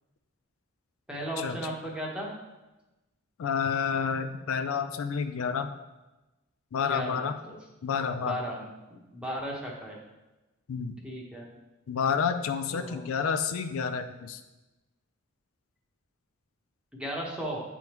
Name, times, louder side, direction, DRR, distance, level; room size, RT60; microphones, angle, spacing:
voice 1, 1.1-2.3 6.9-7.6 8.2-10.0 11.0-11.5 12.7-13.0 16.9-17.6, right 1 dB, 5° right, -3 dB, 1.0 m, -36 dB
voice 2, 3.4-5.7 6.7-7.4 7.8-8.4 10.7-11.0 11.9-14.4, left 6 dB, 80° left, 9 dB, 0.4 m, -29 dB
9.2 x 3.5 x 3.0 m, 1.1 s
head